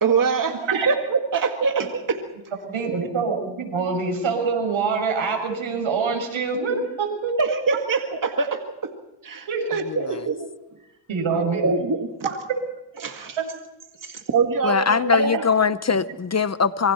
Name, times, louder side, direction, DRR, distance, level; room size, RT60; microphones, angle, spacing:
voice 1, 0.0-0.6 0.9-2.2 2.9-3.1 7.4-8.9 9.2-10.5 11.3-12.3 13.0-13.1 14.0-15.4, right 5 dB, 40° right, 4 dB, 2.1 m, -24 dB
voice 2, 2.7-7.3 9.5-9.7 10.0-10.1 11.1-11.7 12.2-12.4 15.1-15.2, right 5 dB, 75° right, 3 dB, 6.6 m, -25 dB
voice 3, 9.9-10.2 14.6-16.9, left 6 dB, 35° left, 14 dB, 0.9 m, -21 dB
27.0 x 23.5 x 4.4 m, 0.92 s
cardioid pair, 70°, 48 cm